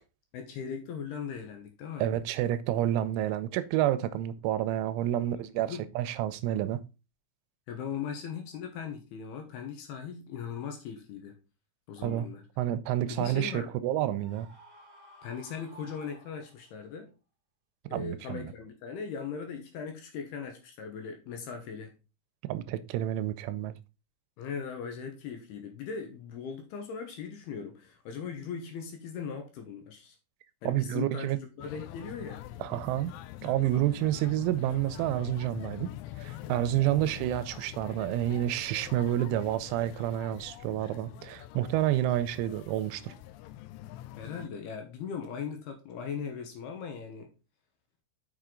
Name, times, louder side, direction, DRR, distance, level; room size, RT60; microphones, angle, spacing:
voice 1, 0.3-2.1 5.2-5.9 7.7-11.4 11.9-12.4 13.1-13.8 15.2-17.1 17.9-21.9 24.4-30.2 30.6-31.3 31.6-32.4 36.9-37.1 44.2-47.3, left 6 dB, 75° left, 2.6 m, -39 dB
voice 2, 2.0-6.8 12.0-12.3 12.6-14.5 17.9-18.5 22.5-23.7 30.7-31.4 32.6-33.1 33.4-35.9 36.2-43.1, right 13 dB, 90° right, 3.1 m, -29 dB
Screaming, 14.2-16.9, right 1 dB, 50° right, 0.8 m, -54 dB
sound 1, 31.6-44.5, left 14 dB, 90° left, 3.1 m, -45 dB
7.1 x 6.2 x 3.8 m
omnidirectional pair, 5.4 m